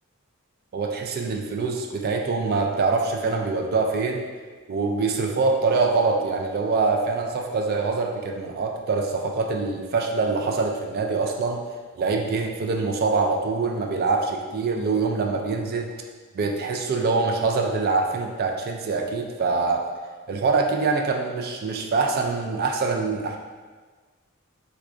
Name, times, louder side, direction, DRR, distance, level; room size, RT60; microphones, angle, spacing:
voice 1, 0.7-4.3 4.7-11.6 12.0-15.9 16.3-19.9 20.3-23.4, right 4 dB, 45° right, 2 dB, 0.3 m, -24 dB
4.7 x 2.3 x 2.4 m, 1.4 s
head